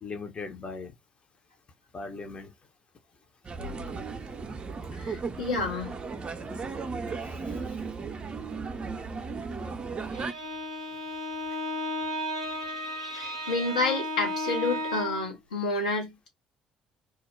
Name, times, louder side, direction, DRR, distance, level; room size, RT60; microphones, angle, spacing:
voice 1, 0.0-0.9 1.9-2.5 7.2-7.8, left 4 dB, 35° left, 0.6 m, -39 dB
sound 1, 3.4-10.3, right 4 dB, 30° right, 0.5 m, -35 dB
voice 2, 5.0-5.9 13.1-16.3, left 3 dB, 80° left, 0.8 m, -29 dB
Bowed string instrument, 10.0-15.3, left 1 dB, 90° right, 0.4 m, -34 dB
2.3 x 2.1 x 3.1 m
figure-of-eight pair, 50°, 3 cm